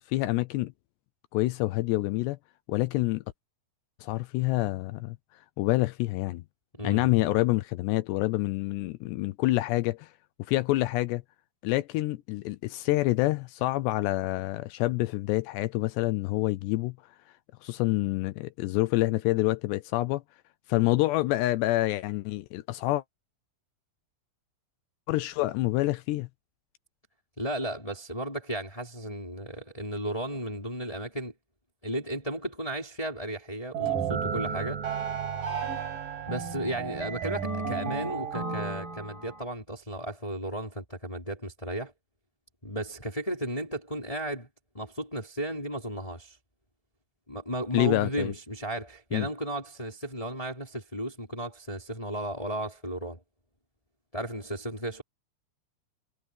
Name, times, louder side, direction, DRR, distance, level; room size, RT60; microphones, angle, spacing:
voice 1, 0.1-0.7 1.3-2.4 2.7-3.2 4.0-5.2 5.6-6.4 6.8-10.1 10.5-11.2 11.6-17.0 17.6-20.2 20.7-23.0 25.1-26.3 47.7-48.3 49.1-49.3, left 18 dB, 85° left, 2.5 m, -27 dB
voice 2, 6.7-7.4 27.4-31.3 31.8-34.8 36.3-41.9 42.6-44.5 44.7-46.4 47.3-53.2 54.1-55.0, right 1 dB, 5° left, 5.0 m, -34 dB
sound 1, 33.7-39.4, right 6 dB, 45° right, 7.3 m, -33 dB
sound 2, 33.9-39.4, right 9 dB, 80° right, 5.0 m, -41 dB
omnidirectional pair, 5.6 m